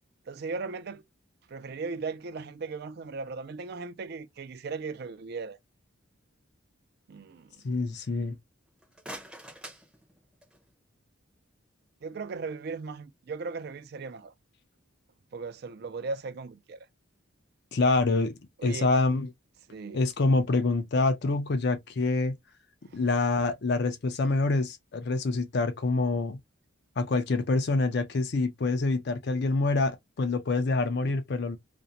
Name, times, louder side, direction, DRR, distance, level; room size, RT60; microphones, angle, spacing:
voice 1, 0.3-1.0 1.5-5.6 7.1-7.6 12.0-14.3 15.3-16.9 18.6-18.9 19.7-20.0 22.9-23.0 31.0-31.1, right 4 dB, 50° right, 0.3 m, -37 dB
voice 2, 7.6-8.4 17.7-19.3 19.9-22.4 22.9-26.4 27.0-31.6, left 3 dB, 50° left, 0.4 m, -26 dB
sound 1, 8.7-10.7, right 1 dB, 5° right, 0.6 m, -46 dB
2.5 x 2.1 x 2.8 m
head